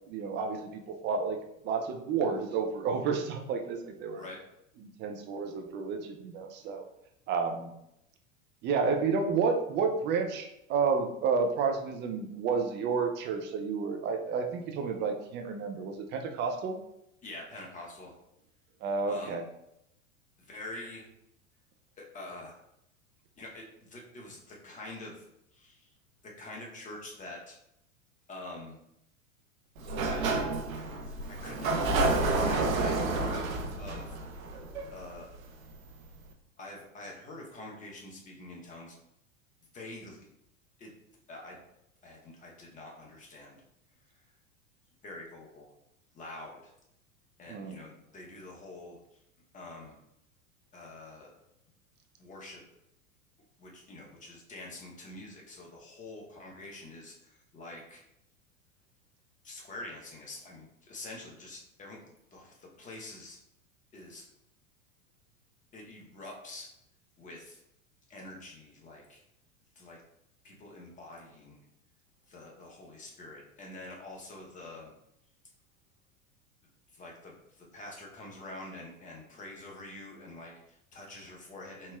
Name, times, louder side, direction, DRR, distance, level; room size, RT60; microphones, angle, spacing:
voice 1, 0.1-1.4 1.6-4.2 4.8-6.8 7.3-7.7 8.6-16.8 18.8-19.4 47.5-47.8, right 5 dB, 25° right, 4 dB, 0.4 m, -31 dB
voice 2, 17.2-18.2 19.1-19.4 20.4-21.1 22.0-22.6 23.4-25.2 25.5-25.9 26.2-27.6 28.3-28.8 30.0-30.4 30.7-30.9 31.3-34.2 34.9-35.3 36.6-38.9 39.7-40.3 40.8-40.9 41.3-41.6 42.0-43.6 45.0-45.7 46.1-46.7 47.4-49.0 49.5-50.0 50.7-51.3 52.2-52.6 53.6-58.0 59.4-62.0 62.3-63.4 63.9-64.2 65.7-66.7 67.2-67.6 68.1-69.2 69.7-70.0 70.4-71.7 72.3-74.9 76.9-82.0, left 2 dB, 20° left, -1 dB, 0.9 m, -46 dB
Sliding door, 29.8-35.4, right 3 dB, 75° right, 0.7 m, -30 dB
4.2 x 2.9 x 2.3 m, 0.80 s
hypercardioid pair, 95°, 41 cm